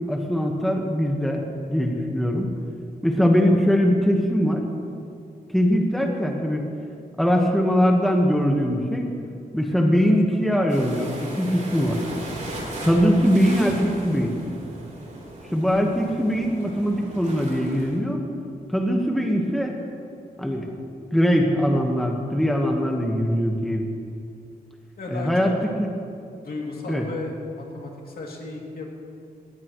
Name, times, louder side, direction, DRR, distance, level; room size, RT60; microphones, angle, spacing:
voice 1, 0.0-2.5 3.0-4.6 5.5-6.6 7.2-9.1 9.5-12.0 12.8-14.3 15.5-18.2 18.7-19.8 20.4-20.7 21.1-23.9 25.1-25.9 26.9-27.1, equal, ahead, 1 dB, 1.3 m, -21 dB
voice 2, 9.7-10.0 25.0-25.5 26.4-28.8, left 3 dB, 65° left, -1 dB, 2.7 m, -35 dB
sound 1, 10.7-18.0, right 1 dB, 50° right, 3.8 m, -37 dB
21.0 x 15.5 x 3.1 m, 2.4 s
wide cardioid pair, 135°, 16 cm